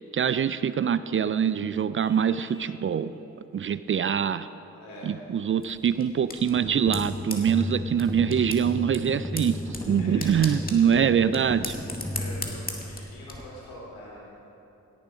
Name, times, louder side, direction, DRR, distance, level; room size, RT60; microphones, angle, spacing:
voice 1, 0.1-3.1 3.5-4.5 5.0-9.6 9.9-11.7, right 8 dB, 40° right, 15 dB, 0.4 m, -24 dB
Vehicle horn car horn honking, 2.0-2.8, left 2 dB, 60° right, 1.7 m, -53 dB
voice 2, 4.7-5.1 7.5-7.6 9.9-10.4 12.2-14.2, left 1 dB, 85° left, -4 dB, 3.3 m, -44 dB
sound 1, 5.6-13.4, left 2 dB, 25° left, 2.0 m, -40 dB
sound 2, 6.5-13.4, left 1 dB, 10° left, 0.8 m, -34 dB
17.0 x 7.4 x 5.1 m, 2.9 s
hypercardioid pair, 40°, 34 cm